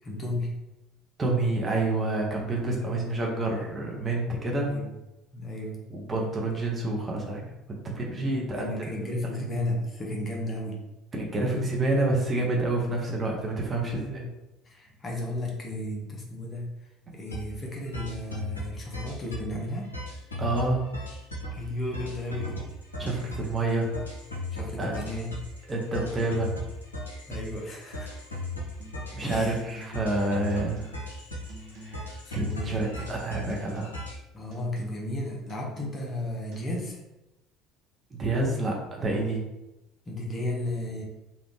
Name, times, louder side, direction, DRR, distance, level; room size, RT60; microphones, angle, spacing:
voice 1, 0.0-0.6 2.8-3.1 4.6-4.9 5.3-5.8 8.1-10.8 13.8-14.3 14.6-19.9 21.5-22.6 24.5-25.3 27.3-28.1 29.2-29.6 32.2-33.1 34.3-37.0 40.1-41.0, left 1 dB, 30° left, -2 dB, 0.9 m, -34 dB
voice 2, 1.2-4.7 5.9-7.4 7.8-8.7 11.2-14.2 20.4-20.8 23.0-23.9 24.8-25.0 25.7-26.5 29.1-30.9 31.8-32.0 32.3-33.9 38.1-39.4, right 2 dB, 25° right, -1 dB, 0.9 m, -28 dB
sound 1, 17.3-17.5 17.8-19.5 19.8-34.2, left 1 dB, 85° left, 0.6 m, -37 dB
sound 2, 28.8-29.1 29.5-30.2 30.5-31.2 31.5-32.1 32.5-33.2 33.5-34.1 34.5-35.2 35.5-36.2 36.5-36.8, right 1 dB, 55° right, 0.9 m, -47 dB
3.4 x 2.5 x 3.2 m, 0.96 s
figure-of-eight pair, 60°, 0 cm